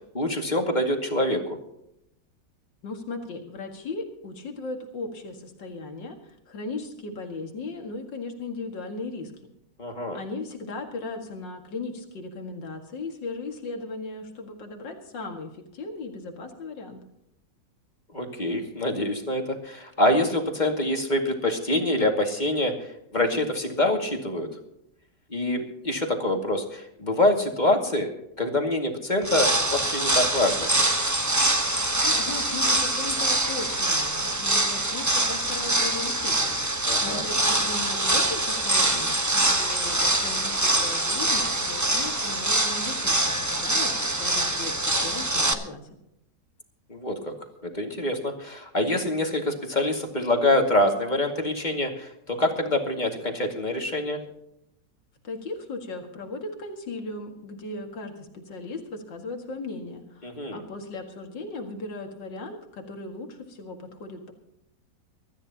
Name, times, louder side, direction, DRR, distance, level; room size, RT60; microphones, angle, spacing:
voice 1, 0.1-1.4 9.8-10.2 18.1-22.7 23.1-24.5 25.3-28.1 28.4-30.7 36.9-37.3 46.9-47.3 47.6-54.2 60.2-60.6, left 1 dB, 25° left, 2 dB, 2.2 m, -25 dB
voice 2, 2.8-9.3 10.1-17.0 32.0-45.9 55.2-64.3, left 3 dB, 80° left, 3 dB, 2.7 m, -37 dB
sound 1, 29.2-45.5, right 1 dB, 15° right, 0.9 m, -24 dB
24.5 x 13.5 x 2.9 m, 0.79 s
omnidirectional pair, 1.9 m